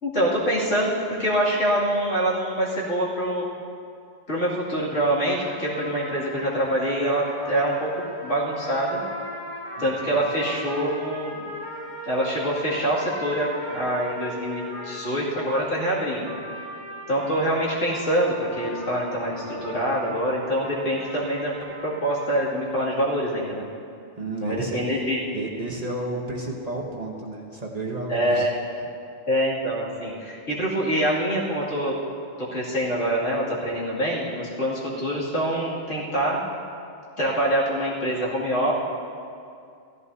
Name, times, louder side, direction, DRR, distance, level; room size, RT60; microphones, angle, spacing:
voice 1, 0.0-3.4 4.3-9.0 9.8-11.4 12.0-16.3 17.1-21.5 21.8-23.6 24.4-25.2 28.1-28.5 29.3-32.0 32.4-36.4 37.2-38.7, right 1 dB, 80° left, -7 dB, 2.8 m, -25 dB
sound 1, 5.2-22.4, equal, 45° left, 3.6 m, -38 dB
voice 2, 9.8-10.3 24.2-24.8 25.3-28.5, right 2 dB, 35° right, -2 dB, 1.1 m, -32 dB
15.5 x 14.5 x 2.8 m, 2.5 s
omnidirectional pair, 1.2 m